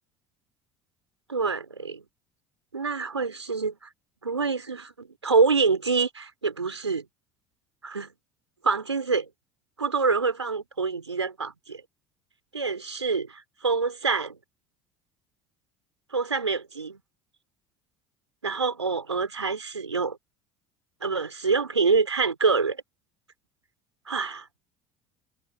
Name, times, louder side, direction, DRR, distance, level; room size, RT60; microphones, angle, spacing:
voice 1, 1.3-2.0 2.7-3.9 4.2-7.0 7.8-8.1 8.6-9.3 9.8-11.8 12.5-14.4 16.1-17.0 18.4-20.2 21.0-22.8 24.1-24.4, right 4 dB, 85° right, 3.3 m, -26 dB
figure-of-eight pair, 65°, 14 cm